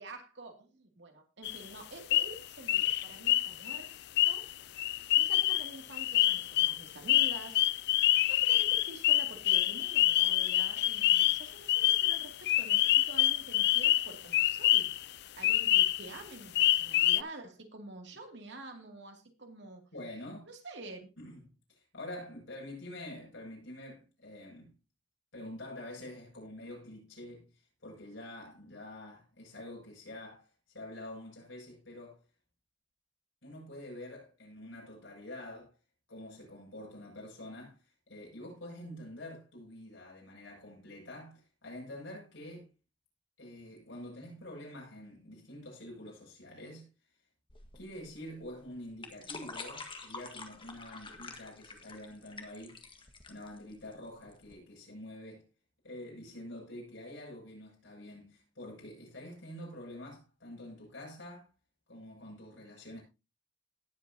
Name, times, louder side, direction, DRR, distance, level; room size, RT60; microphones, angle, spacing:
voice 1, 0.0-3.9 4.1-4.5 5.1-7.6 8.3-19.8 20.4-21.1, right 2 dB, 65° right, 2.6 m, -48 dB
sound 1, 1.4-1.6 2.1-2.4 2.7-15.0 15.4-16.2 16.5-17.2, left 14 dB, 60° left, 0.4 m, -27 dB
voice 2, 19.9-20.5 21.2-24.7 25.3-32.2 33.4-35.7 36.1-37.8 38.1-42.7 43.4-46.9 47.7-52.9 53.3-55.5 55.8-61.5 61.9-63.0, left 1 dB, 80° left, 7.3 m, -47 dB
sound 2, 47.5-54.5, left 4 dB, 25° left, 1.6 m, -47 dB
18.0 x 8.2 x 2.8 m
head